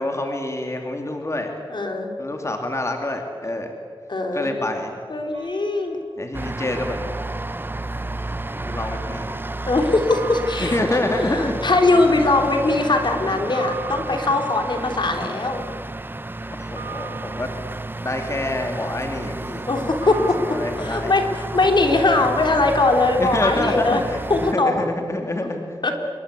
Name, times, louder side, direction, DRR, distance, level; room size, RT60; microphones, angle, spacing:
voice 1, 0.0-1.5 2.2-3.7 4.3-5.0 6.2-7.3 8.5-9.5 10.6-11.7 16.5-17.5 18.0-19.7 20.2-21.1 23.2-24.2 24.5-25.6, left 1 dB, 30° left, 3 dB, 2.8 m, -27 dB
voice 2, 1.7-2.1 4.1-4.5 5.1-6.0 9.7-15.6 19.7-20.4 20.8-24.0 24.3-24.8 25.8-25.9, left 2 dB, 55° left, 4 dB, 3.5 m, -20 dB
sound 1, 5.3-6.4 10.1-24.2, right 6 dB, 80° right, 7.9 m, -43 dB
sound 2, 6.3-24.5, right 2 dB, 25° right, 0.7 m, -32 dB
27.5 x 23.0 x 8.3 m, 2.2 s
wide cardioid pair, 95°, 9 cm